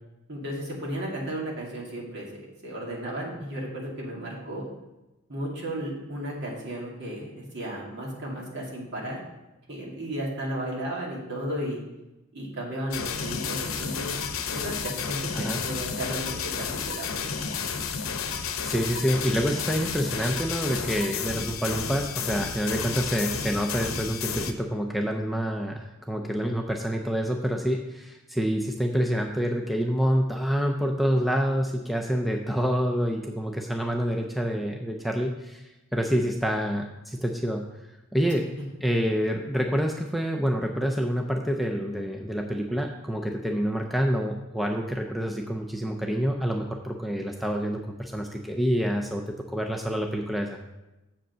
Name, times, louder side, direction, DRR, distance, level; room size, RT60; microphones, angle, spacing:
voice 1, 0.3-4.6 5.3-9.2 9.7-11.8 12.3-14.1 14.5-17.5, right 1 dB, 55° right, -4 dB, 2.4 m, -34 dB
sound 1, 12.9-24.5, left 6 dB, 75° left, 0.8 m, -32 dB
voice 2, 18.6-37.6 38.1-38.5 38.8-49.2 49.5-50.6, equal, ahead, 1 dB, 0.5 m, -27 dB
7.3 x 5.1 x 6.6 m, 0.99 s
head